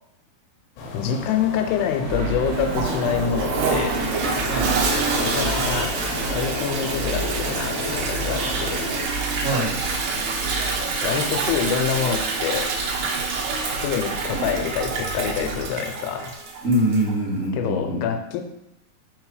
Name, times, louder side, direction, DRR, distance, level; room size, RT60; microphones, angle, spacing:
sound 1, 0.8-9.1, left 3 dB, 70° left, 2.4 m, -32 dB
voice 1, 0.9-4.0 5.1-6.0 6.3-8.9 11.0-12.7 13.7-16.4 17.5-18.4, left 8 dB, 90° left, 6 dB, 2.7 m, -26 dB
sound 2, 2.0-15.6, right 3 dB, 90° right, 1.7 m, -32 dB
Toilet flush, 2.5-17.2, right 4 dB, 75° right, 2.1 m, -27 dB
voice 2, 4.5-4.8 9.4-9.8 16.6-18.0, right 1 dB, 45° right, -11 dB, 0.9 m, -23 dB
5.5 x 4.0 x 4.8 m, 0.84 s
omnidirectional pair, 4.6 m